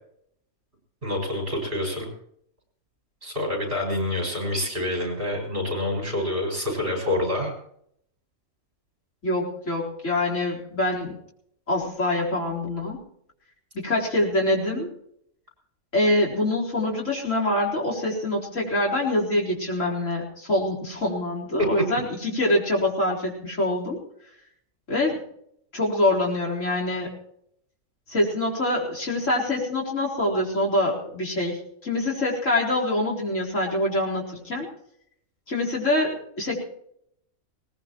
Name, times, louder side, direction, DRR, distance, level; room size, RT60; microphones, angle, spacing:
voice 1, 1.0-2.1 3.2-7.5 21.8-21.9, left 1 dB, 40° right, 2 dB, 6.4 m, -27 dB
voice 2, 9.2-11.1 11.7-13.0 13.7-14.9 15.9-24.0 24.9-25.2 25.7-27.1 28.1-31.6 31.8-34.7 35.5-36.6, left 1 dB, 65° left, -2 dB, 4.6 m, -25 dB
21.0 x 19.5 x 3.0 m, 0.70 s
omnidirectional pair, 1.4 m